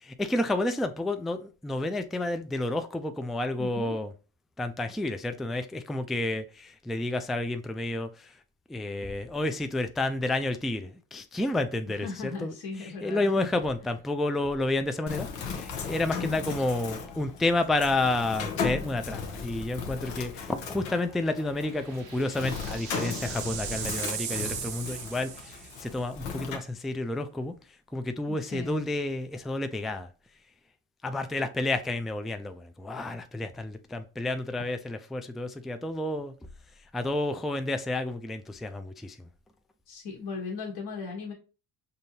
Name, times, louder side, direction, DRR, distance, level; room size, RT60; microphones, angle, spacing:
voice 1, 0.0-4.1 4.6-8.3 8.7-12.5 12.8-27.5 27.9-30.1 31.0-36.3 36.9-39.2, left 2 dB, ahead, 0.3 m, -30 dB
voice 2, 3.6-4.0 11.9-13.5 28.3-28.8 39.9-41.3, left 4 dB, 60° left, 1.2 m, -38 dB
Bird, 15.1-26.6, left 6 dB, 90° left, 0.8 m, -37 dB
sound 1, 21.3-26.0, right 8 dB, 90° right, 0.8 m, -38 dB
5.3 x 2.7 x 2.8 m
supercardioid pair, 60°, 43 cm